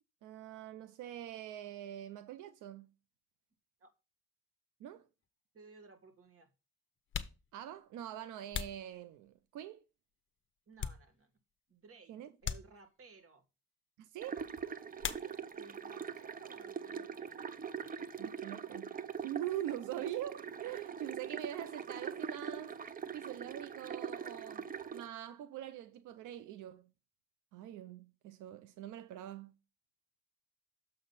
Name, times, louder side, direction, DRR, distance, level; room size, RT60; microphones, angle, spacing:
voice 1, 0.2-2.9 4.8-5.1 7.5-9.8 12.1-12.3 14.0-14.5 18.2-18.9 19.2-22.8 23.1-26.9 27.5-29.5, right 12 dB, 85° right, 0.6 m, -44 dB
sound 1, 5.2-5.3 6.3-6.4 7.0-9.6 10.1-11.5 11.8-11.9 12.4-13.2 15.0-15.8 16.0-16.7 17.0-19.2, left 8 dB, 40° left, 0.8 m, -44 dB
voice 2, 5.5-6.5 10.7-11.3 11.7-12.2 12.4-13.4 15.0-17.4, right 4 dB, 50° right, 1.8 m, -58 dB
sound 2, 14.2-25.1, right 7 dB, 30° right, 0.6 m, -43 dB
6.9 x 5.5 x 4.0 m
cardioid pair, 90°, 30 cm